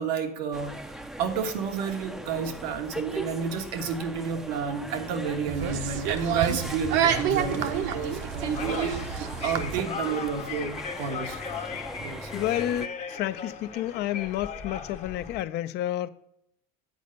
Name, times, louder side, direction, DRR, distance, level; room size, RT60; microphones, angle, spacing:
voice 1, 0.0-11.4 11.7-12.3, right 6 dB, 90° right, 1.3 m, -31 dB
sound 1, 0.5-12.9, right 1 dB, ahead, 0.5 m, -39 dB
sound 2, 5.5-9.8, right 8 dB, 65° right, 0.9 m, -29 dB
sound 3, 6.0-15.4, left 6 dB, 35° left, 0.9 m, -38 dB
voice 2, 12.3-16.1, left 13 dB, 55° left, 0.5 m, -30 dB
8.3 x 4.2 x 6.4 m
supercardioid pair, 115°, 21 cm